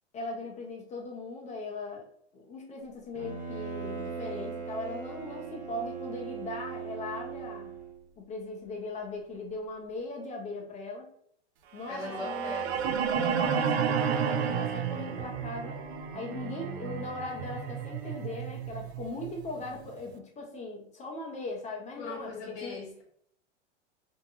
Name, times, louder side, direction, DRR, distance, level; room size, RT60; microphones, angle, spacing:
voice 1, 0.1-2.1 2.3-7.7 8.2-11.1 11.7-12.7 13.1-15.8 16.1-22.8, left 2 dB, 20° left, 0 dB, 0.6 m, -39 dB
Bowed string instrument, 3.1-8.0, right 6 dB, 20° right, 0.8 m, -39 dB
sound 1, 11.8-19.9, right 7 dB, 65° right, 0.5 m, -32 dB
voice 2, 11.9-13.1 22.0-23.0, left 3 dB, 70° left, -3 dB, 1.0 m, -40 dB
2.6 x 2.2 x 2.8 m, 0.66 s
hypercardioid pair, 115°, 35 cm